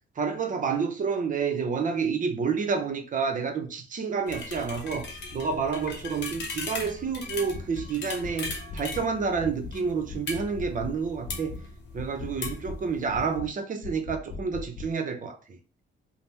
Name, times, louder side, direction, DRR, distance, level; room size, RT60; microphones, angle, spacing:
voice 1, 0.2-5.1 5.3-11.5 11.9-15.6, right 5 dB, 40° right, 0.6 m, -29 dB
sound 1, 4.3-13.4, left 3 dB, 60° left, 0.8 m, -39 dB
sound 2, 7.5-7.9 8.2-9.1 9.4-9.8 10.1-11.0 11.3-11.7 12.0-12.8 13.1-13.5 13.8-14.9, left 4 dB, 40° left, 0.4 m, -39 dB
3.3 x 2.0 x 2.8 m
cardioid pair, 90°, 20 cm